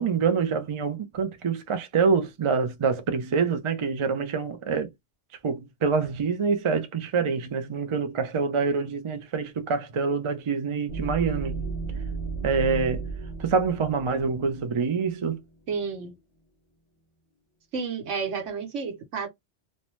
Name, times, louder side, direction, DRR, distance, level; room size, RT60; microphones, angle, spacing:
voice 1, 0.0-4.9 5.4-11.7 12.4-13.0 13.4-15.4, right 5 dB, 50° right, 0.3 m, -26 dB
sound 1, 10.9-15.4, right 4 dB, 45° left, 0.5 m, -34 dB
voice 2, 15.7-16.1 17.7-19.3, right 5 dB, 80° right, 1.3 m, -31 dB
2.7 x 2.1 x 3.0 m
omnidirectional pair, 1.3 m